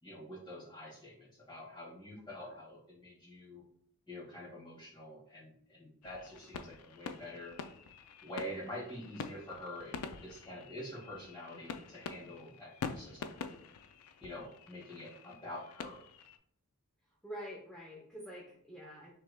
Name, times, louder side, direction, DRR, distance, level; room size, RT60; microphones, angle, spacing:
voice 1, 0.0-3.6 4.1-7.6 8.2-9.9 10.2-13.6 14.2-16.0, left 1 dB, 20° left, -6 dB, 1.8 m, -46 dB
sound 1, 6.0-16.4, left 5 dB, 85° left, 0.4 m, -46 dB
voice 2, 17.2-19.1, equal, 5° left, -4 dB, 0.7 m, -47 dB
5.9 x 3.4 x 2.2 m, 0.65 s
head